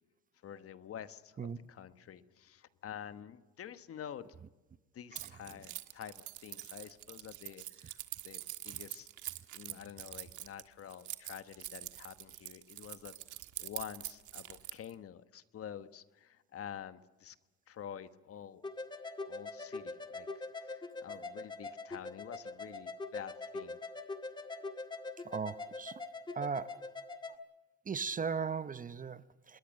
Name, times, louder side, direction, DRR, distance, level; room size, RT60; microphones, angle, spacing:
voice 1, 0.4-4.3 4.9-8.0 8.2-9.1 9.5-13.1 13.6-17.4 17.7-18.6 19.3-23.8, left 9 dB, 50° left, 1.2 m, -48 dB
Keys jangling, 5.2-14.9, right 15 dB, 75° right, 1.5 m, -45 dB
sound 1, 18.6-27.3, left 3 dB, 15° left, 1.9 m, -43 dB
voice 2, 25.2-26.0 26.3-26.8 27.9-29.6, right 5 dB, 25° right, 0.8 m, -37 dB
27.0 x 21.0 x 6.5 m
cardioid pair, 105°, 31 cm